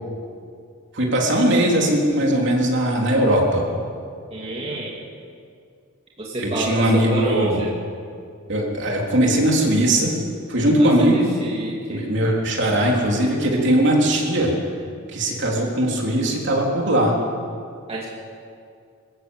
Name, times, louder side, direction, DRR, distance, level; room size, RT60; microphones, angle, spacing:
voice 1, 0.9-3.6 6.4-7.6 8.5-10.1 10.5-11.3 11.9-14.5 15.1-17.1, right 1 dB, 55° right, -1 dB, 3.7 m, -19 dB
voice 2, 4.3-5.0 6.2-7.7 10.8-12.0 17.9-18.1, right 1 dB, 30° right, -4 dB, 2.5 m, -28 dB
23.0 x 14.0 x 8.1 m, 2.3 s
head